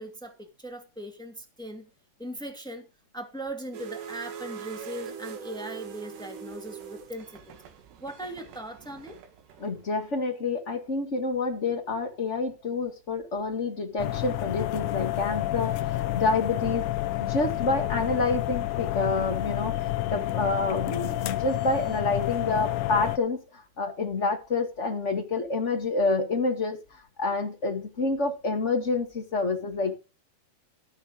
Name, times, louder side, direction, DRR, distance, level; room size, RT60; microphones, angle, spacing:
voice 1, 0.0-1.9 2.2-2.9 3.1-7.6 8.0-9.2, right 1 dB, 5° left, 0.8 m, -39 dB
sound 1, 3.7-10.1, right 8 dB, 80° right, 4.0 m, -42 dB
voice 2, 9.6-15.8 16.1-16.9 17.2-23.4 23.8-29.9, left 3 dB, 65° left, 0.7 m, -28 dB
sound 2, 14.0-23.2, left 15 dB, 85° left, 1.8 m, -29 dB
14.5 x 6.8 x 5.1 m
omnidirectional pair, 4.8 m